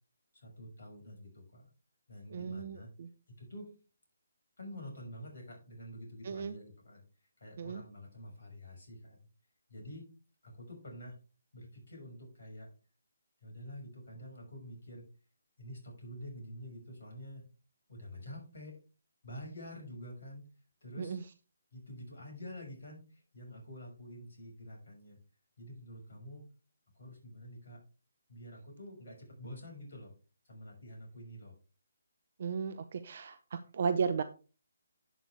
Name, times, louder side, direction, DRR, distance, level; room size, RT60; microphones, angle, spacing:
voice 1, 0.3-1.7 2.1-2.9 3.4-3.8 4.6-7.0 7.4-9.2 9.7-10.1 10.4-11.2 11.5-12.7 13.4-15.1 15.6-17.4 17.9-18.8 19.2-20.5 20.8-21.2 21.7-25.2 25.6-26.5 26.9-27.8 28.3-30.1 30.4-31.5, equal, 55° left, 0 dB, 6.0 m, -48 dB
voice 2, 2.3-3.1 6.2-6.5 7.6-7.8 21.0-21.2 32.4-34.2, right 6 dB, 45° right, 11 dB, 0.8 m, -35 dB
11.0 x 8.1 x 3.5 m, 0.34 s
figure-of-eight pair, 140°, 0 cm